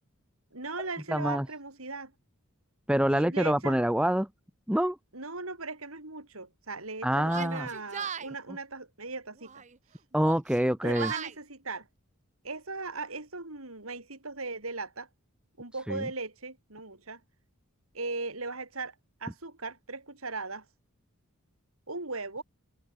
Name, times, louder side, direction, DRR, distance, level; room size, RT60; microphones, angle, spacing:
voice 1, 0.5-2.1 3.1-3.8 5.1-9.6 10.8-11.9 12.4-15.1 15.6-17.2 17.9-18.9 19.2-20.6 21.9-22.4, right 3 dB, 75° right, 6.4 m, -38 dB
voice 2, 1.1-1.5 2.9-4.3 4.7-5.0 7.0-7.7 10.1-11.1 15.9-16.1, equal, 5° right, 1.1 m, -26 dB
Yell, 7.2-8.3 9.4-9.8 10.1-11.4, right 7 dB, 35° right, 1.0 m, -38 dB
head